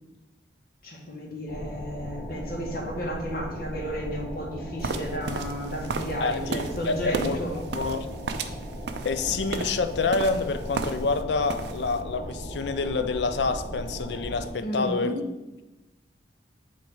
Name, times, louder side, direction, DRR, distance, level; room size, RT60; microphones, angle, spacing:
voice 1, 0.8-7.6 14.6-15.2, equal, 50° left, 1.5 m, -33 dB
sound 1, 1.5-14.5, equal, 20° left, 1.6 m, -38 dB
sound 2, 4.8-11.2 11.5-12.0, right 4 dB, 60° right, 0.5 m, -34 dB
sound 3, 5.3-11.6 12.3-12.6, equal, 20° right, 0.9 m, -50 dB
voice 2, 6.2-7.4 7.7-8.1 9.0-15.2, left 4 dB, 65° left, 0.5 m, -27 dB
7.7 x 3.1 x 4.8 m
head